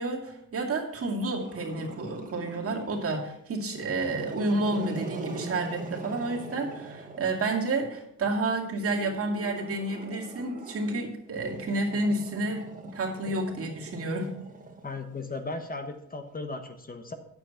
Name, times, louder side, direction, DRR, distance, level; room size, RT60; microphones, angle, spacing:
voice 1, 0.0-14.4, right 2 dB, 50° right, 0 dB, 2.4 m, -30 dB
Growling, 1.4-3.1 3.7-7.8 8.8-15.3, right 3 dB, 25° right, 1.8 m, -42 dB
voice 2, 14.8-17.1, left 3 dB, 30° left, 7 dB, 1.2 m, -36 dB
9.1 x 7.6 x 5.8 m, 0.76 s
cardioid pair, 90°, 30 cm